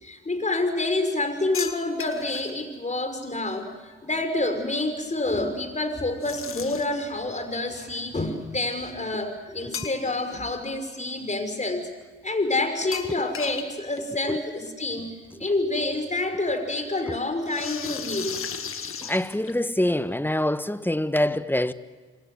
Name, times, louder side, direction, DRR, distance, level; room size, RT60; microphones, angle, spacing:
voice 1, 0.0-3.7 4.0-11.8 12.2-15.1 15.4-18.4, left 2 dB, 25° left, 6.0 m, -28 dB
sound 1, 1.5-2.5 6.2-7.1 9.7-10.3 10.7-10.8 12.9-13.7 14.0-14.1 14.3-14.4 15.6-15.7 17.4-19.8, left 7 dB, 45° left, 2.1 m, -35 dB
voice 2, 19.0-21.7, left 1 dB, 5° left, 1.3 m, -25 dB
27.0 x 23.0 x 8.1 m
hypercardioid pair, 50°, 30 cm